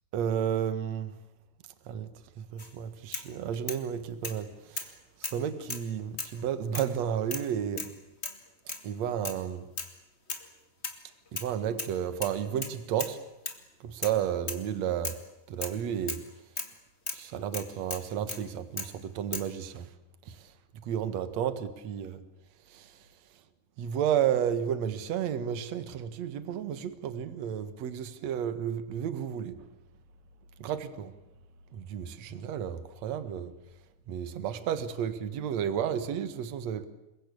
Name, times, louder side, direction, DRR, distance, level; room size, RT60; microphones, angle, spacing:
voice 1, 0.1-1.1 1.9-2.1 2.4-4.9 5.2-7.9 8.8-9.6 11.3-13.2 13.8-15.2 15.5-16.2 17.1-19.9 20.3-20.4 20.8-22.2 22.7-22.9 23.8-29.7 30.6-31.1 31.7-33.5 34.1-36.9, right 9 dB, 60° right, 12 dB, 2.6 m, -32 dB
sound 1, 2.6-2.7 3.1-3.8 4.2-4.4 4.8-4.9 5.2-5.9 6.2-6.4 6.7-6.9 7.3-7.5 7.8-8.0 8.2-8.4 8.7-8.9 9.2-9.4 9.8-9.9 10.3-10.5 10.8-11.5 11.8-12.0 12.2-13.2 13.5-13.6 14.0-14.2 14.5-14.7 15.0-15.2 15.6-15.8 16.1-16.3 16.6-16.7 17.1-17.2 17.5-18.4 18.8-18.9 19.3-19.5, left 3 dB, 20° left, 2.2 m, -37 dB
28.0 x 22.5 x 8.6 m, 0.90 s
omnidirectional pair, 3.7 m